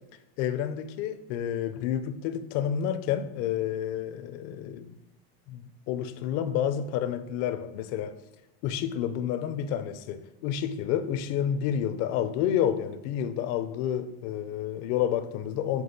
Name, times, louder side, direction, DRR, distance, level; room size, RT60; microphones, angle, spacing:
voice 1, 0.4-5.0 5.5-8.2 8.6-15.8, left 9 dB, 50° left, 0.6 m, -29 dB
6.2 x 3.0 x 5.3 m
supercardioid pair, 135°, 30 cm